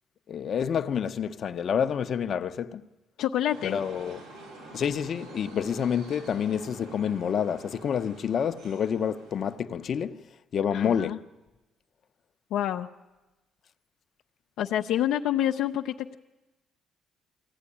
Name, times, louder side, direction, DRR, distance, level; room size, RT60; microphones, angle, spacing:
voice 1, 0.3-2.8 3.6-4.2 4.7-10.3 10.5-11.2, left 8 dB, 50° left, 0.8 m, -28 dB
voice 2, 3.2-3.8 10.7-11.2 12.5-12.9 14.6-16.2, left 11 dB, 80° left, 0.7 m, -27 dB
sound 1, 3.5-9.6, right 2 dB, 80° right, 5.8 m, -48 dB
23.0 x 15.5 x 10.0 m
cardioid pair, 125°, 0 cm